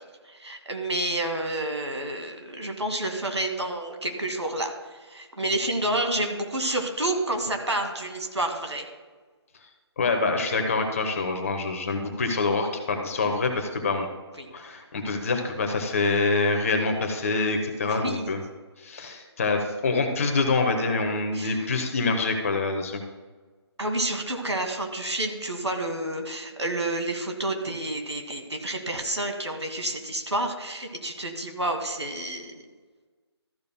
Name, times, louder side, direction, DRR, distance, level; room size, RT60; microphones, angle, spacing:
voice 1, 0.3-8.9 14.4-14.5 17.8-18.3 21.3-21.7 23.8-32.5, right 1 dB, 75° right, 3 dB, 2.0 m, -29 dB
voice 2, 10.0-14.1 14.5-18.4 18.8-23.0, left 3 dB, 30° left, 4 dB, 1.3 m, -26 dB
13.5 x 12.0 x 2.2 m, 1.4 s
figure-of-eight pair, 150°, 14 cm